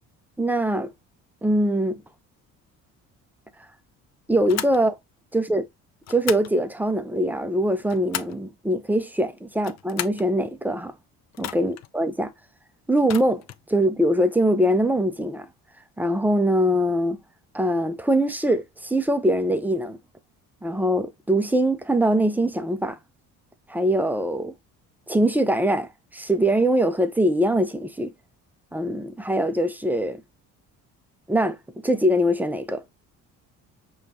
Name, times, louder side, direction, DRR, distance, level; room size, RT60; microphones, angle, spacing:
voice 1, 0.4-0.9 1.4-2.0 4.3-5.0 5.3-5.7 6.1-10.9 11.4-12.3 12.9-13.4 13.7-15.5 16.0-17.2 17.5-20.0 20.6-23.0 23.7-24.5 25.1-28.1 28.7-30.2 31.3-31.6 31.8-32.8, right 1 dB, 5° right, 0.5 m, -22 dB
sound 1, 4.5-4.8 6.0-6.5 7.6-8.4 9.5-10.3 11.3-11.9 13.0-13.6, left 12 dB, 50° left, 0.4 m, -34 dB
5.0 x 2.4 x 2.8 m
cardioid pair, 90°, 34 cm